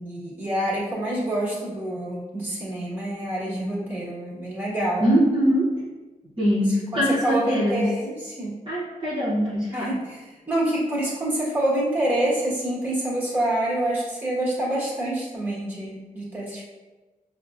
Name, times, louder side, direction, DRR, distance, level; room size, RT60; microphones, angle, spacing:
voice 1, 0.0-5.0 6.7-8.5 9.7-16.6, right 1 dB, 15° right, -6 dB, 1.3 m, -27 dB
voice 2, 5.0-5.8 6.4-7.9 8.7-9.9, equal, 35° right, -8 dB, 0.9 m, -22 dB
5.6 x 2.1 x 2.4 m, 1.2 s
wide cardioid pair, 120°, 14 cm